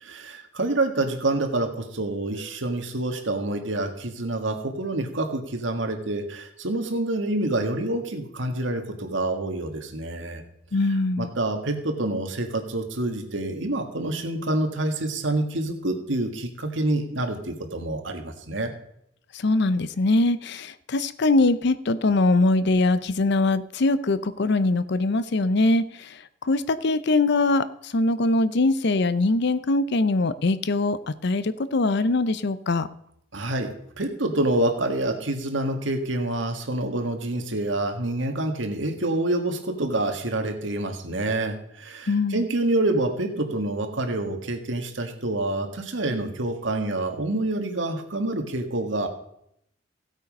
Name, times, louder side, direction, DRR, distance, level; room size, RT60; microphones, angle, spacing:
voice 1, 0.0-10.4 11.2-18.7 33.3-49.1, right 2 dB, 75° right, 5 dB, 1.8 m, -27 dB
voice 2, 10.7-11.3 19.4-26.1 26.5-32.9 42.1-42.4, left 2 dB, 65° left, 15 dB, 0.6 m, -22 dB
16.0 x 8.2 x 5.3 m, 0.74 s
head